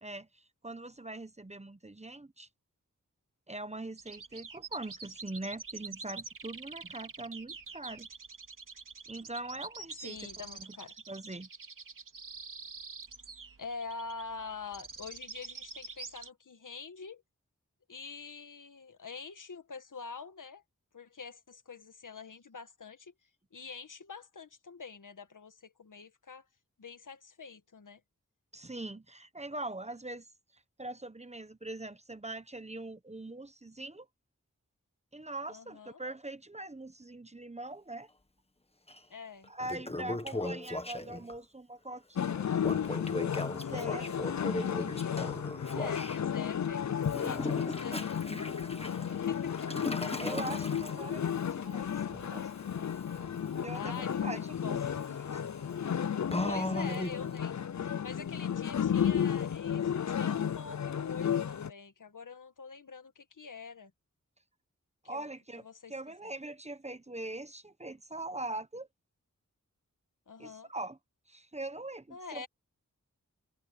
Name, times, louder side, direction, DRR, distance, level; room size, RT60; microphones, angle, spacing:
voice 1, 0.0-2.5 3.5-8.1 9.1-10.2 10.5-10.7 11.1-11.5 28.5-30.3 30.8-34.1 35.1-38.1 39.5-42.7 43.5-44.1 50.2-52.5 53.6-54.8 55.3-55.4 65.1-68.9 70.4-71.0 71.3-72.4, right 2 dB, 20° right, 1.0 m, -42 dB
sound 1, 4.0-16.3, right 4 dB, 90° right, 3.2 m, -46 dB
voice 2, 10.0-10.9 13.6-17.2 17.9-20.6 20.9-23.1 23.5-26.4 26.8-28.0 35.5-36.0 39.1-39.5 40.3-40.5 43.6-45.3 45.7-48.4 49.1-49.7 53.7-54.8 56.4-57.7 58.0-63.9 65.0-65.3 65.6-65.9 66.2-66.3 70.3-70.7 72.1-72.5, left 5 dB, 80° left, 1.7 m, -45 dB
Toilet flush, 38.9-39.0 39.4-41.4 42.6-46.2 47.0-57.4, left 2 dB, 20° left, 1.6 m, -39 dB
sound 2, 42.2-61.7, left 8 dB, 65° left, 0.6 m, -33 dB
wide cardioid pair, 90°, 31 cm